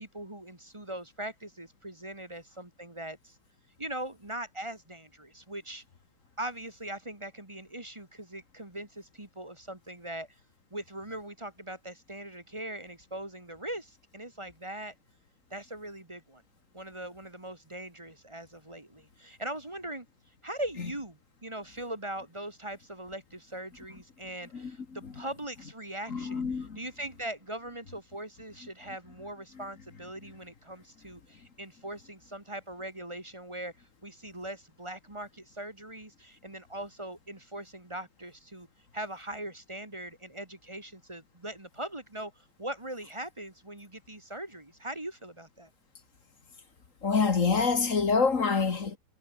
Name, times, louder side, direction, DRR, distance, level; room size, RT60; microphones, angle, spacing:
voice 1, 0.0-3.4 3.8-5.8 6.4-10.3 10.7-14.9 15.5-16.4 16.7-20.1 20.4-26.5 26.8-38.7 38.9-45.7, right 1 dB, 15° right, 1.8 m, -41 dB
voice 2, 24.5-25.1 26.1-26.8 47.0-49.0, left 5 dB, 40° left, 1.9 m, -27 dB
omnidirectional pair, 2.3 m